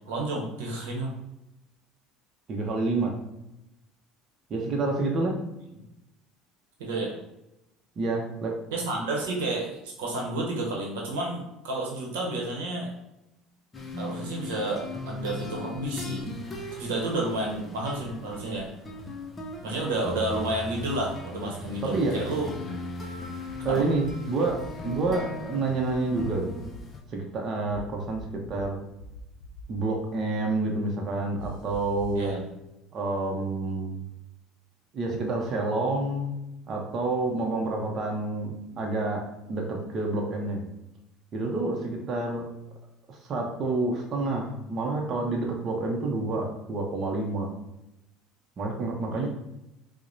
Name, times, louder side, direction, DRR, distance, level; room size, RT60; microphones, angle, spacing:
voice 1, 0.1-1.1 6.8-7.1 8.7-12.9 14.0-16.3 16.8-18.7 19.6-22.5 23.6-23.9 32.1-32.4 49.1-49.3, right 2 dB, 90° right, -1 dB, 0.8 m, -31 dB
voice 2, 2.5-3.1 4.5-5.3 8.0-8.5 21.4-21.5 21.8-22.2 23.6-24.6 24.8-26.5 27.1-28.8 29.7-32.3 32.9-34.0 34.9-36.4 36.7-39.2 39.5-40.6 41.3-42.4 43.2-47.5 48.6-49.3, right 2 dB, 45° right, 0 dB, 0.7 m, -28 dB
sound 1, 13.7-27.0, left 2 dB, 25° left, 0.6 m, -38 dB
sound 2, 23.5-24.1 24.5-25.1 25.9-26.8 27.7-28.7 29.0-29.6 31.4-32.2, left 3 dB, 80° left, 0.4 m, -43 dB
4.6 x 2.1 x 2.6 m, 0.90 s
supercardioid pair, 95°, 0 cm